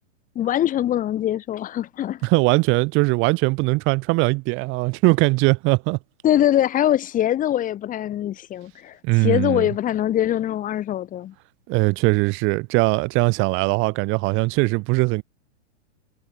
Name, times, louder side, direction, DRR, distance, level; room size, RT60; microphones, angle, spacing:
voice 1, 0.3-2.2 6.2-11.3, left 12 dB, 25° left, 3.3 m, -23 dB
voice 2, 2.2-6.0 9.0-9.7 11.7-15.2, right 26 dB, 35° right, 2.6 m, -20 dB
hypercardioid pair, 145°, 35 cm